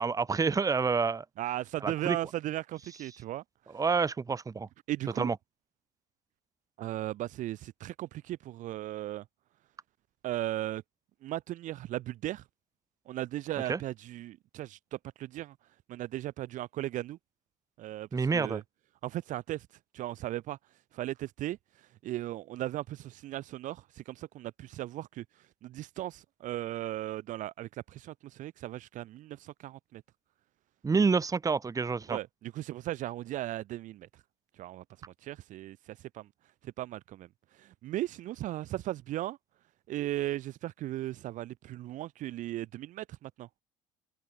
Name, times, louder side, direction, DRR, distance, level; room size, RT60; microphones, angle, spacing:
voice 1, 0.0-1.2 1.8-2.2 3.7-4.7 5.2-5.4 13.7-13.8 18.1-18.6 30.8-32.2, right 4 dB, 25° right, 1.0 m, -28 dB
voice 2, 1.4-3.4 4.9-5.3 6.8-9.2 10.2-10.8 11.2-12.4 13.1-15.6 15.9-17.2 17.8-18.6 19.0-19.7 19.9-20.6 20.9-21.6 22.0-25.2 25.6-30.0 32.1-34.1 34.6-34.8 35.2-36.3 36.6-37.3 37.5-39.4 39.9-43.5, right 14 dB, 60° right, 0.8 m, -37 dB
supercardioid pair, 70°, 15 cm